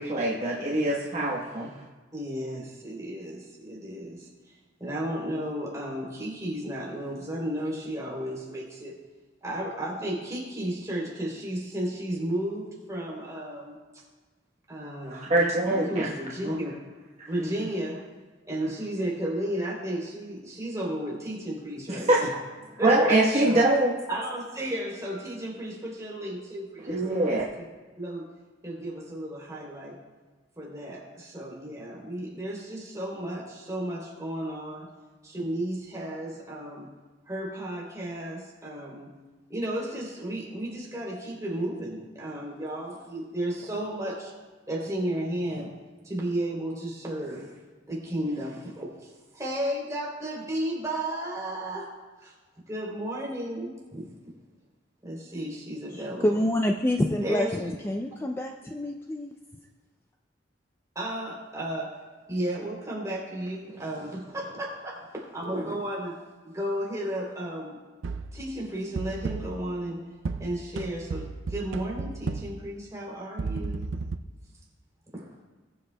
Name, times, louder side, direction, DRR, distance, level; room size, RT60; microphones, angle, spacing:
voice 1, 0.0-1.7 15.1-16.1 16.4-16.6 22.1-22.2 22.8-23.9 26.9-27.4, right 2 dB, 35° right, -5 dB, 1.1 m, -23 dB
voice 2, 2.1-8.9 9.4-14.0 14.7-15.3 15.7-16.7 17.3-18.0 18.4-22.3 22.8-23.2 23.4-23.6 24.1-27.4 28.0-28.3 28.6-30.0 30.6-34.9 35.2-36.9 37.2-39.1 39.5-44.3 44.7-45.7 46.0-47.6 47.9-51.9 52.2-52.3 52.7-54.3 55.0-56.5 57.2-57.7 58.1-58.2 60.9-62.0 62.3-66.1 66.4-67.8 68.3-70.0 70.4-73.8 75.1-75.3, right 1 dB, 20° right, -4 dB, 3.2 m, -33 dB
voice 3, 55.9-59.3, left 1 dB, 15° left, 3 dB, 0.4 m, -27 dB
sound 1, 68.0-68.4 69.0-69.7 70.3-72.7 73.4-74.2, right 4 dB, 85° right, 0.5 m, -33 dB
21.0 x 7.7 x 2.2 m, 1.3 s
head